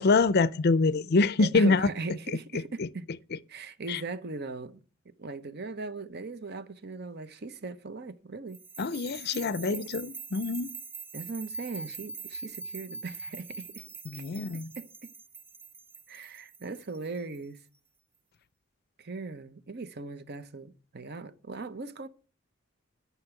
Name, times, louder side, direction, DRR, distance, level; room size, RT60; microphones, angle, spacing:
voice 1, 0.0-1.9 2.8-2.9 3.9-4.0 8.8-10.7 14.1-14.7, left 3 dB, 50° left, 0.5 m, -25 dB
voice 2, 1.4-3.1 3.5-4.8 5.2-8.6 9.7-9.9 11.1-13.8 14.1-14.2 14.5-15.1 16.1-17.6 19.0-22.1, right 3 dB, 50° right, 0.9 m, -39 dB
sound 1, 8.5-17.6, right 4 dB, 10° right, 0.7 m, -43 dB
12.5 x 6.0 x 8.2 m
head